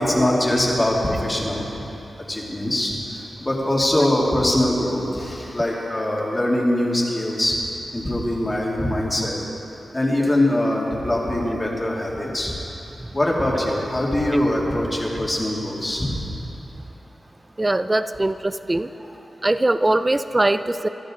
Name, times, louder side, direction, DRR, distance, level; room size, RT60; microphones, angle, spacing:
voice 1, 0.0-1.7 2.3-7.6 7.9-9.4 9.9-12.5 13.1-16.1 19.0-19.2, left 1 dB, 20° left, -4 dB, 2.6 m, -22 dB
voice 2, 17.6-18.9 19.4-20.9, right 2 dB, 20° right, 11 dB, 0.5 m, -21 dB
24.5 x 13.0 x 3.9 m, 3.0 s
wide cardioid pair, 115°, 0 cm